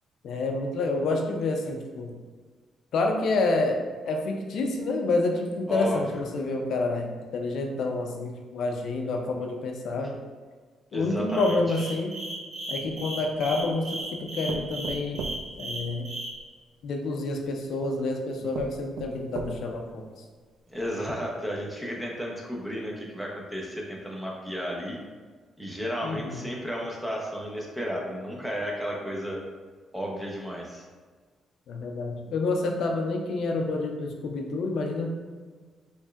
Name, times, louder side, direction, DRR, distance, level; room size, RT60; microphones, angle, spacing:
voice 1, 0.2-2.2 2.9-10.2 10.9-12.1 12.7-15.2 15.6-16.1 16.8-20.1 26.0-26.4 31.7-35.1, left 2 dB, 70° left, 2 dB, 0.5 m, -28 dB
voice 2, 5.7-6.2 10.9-11.8 20.7-25.0 25.6-29.4 29.9-30.8, equal, 5° right, -2 dB, 0.9 m, -33 dB
sound 1, 11.3-16.3, right 1 dB, 60° right, 1.2 m, -35 dB
sound 2, 12.8-13.7 14.5-16.4 17.4-17.5 18.1-18.2 18.5-19.9 20.4-20.5 20.8-20.9, right 4 dB, 80° right, 0.3 m, -38 dB
4.3 x 3.2 x 2.4 m, 1.5 s
cardioid pair, 90°, 0 cm